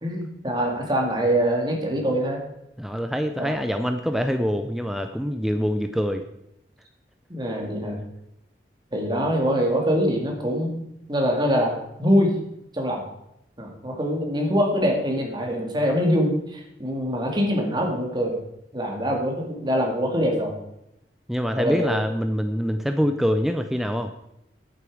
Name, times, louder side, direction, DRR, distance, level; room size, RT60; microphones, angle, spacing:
voice 1, 0.0-2.4 3.4-3.5 7.3-8.0 8.9-10.8 11.1-12.3 12.7-13.0 13.6-18.4 18.7-20.5 21.5-21.9, equal, 25° right, 1 dB, 2.1 m, -24 dB
voice 2, 2.8-6.2 21.3-24.1, equal, ahead, 6 dB, 0.5 m, -25 dB
10.0 x 8.7 x 4.8 m, 0.83 s
head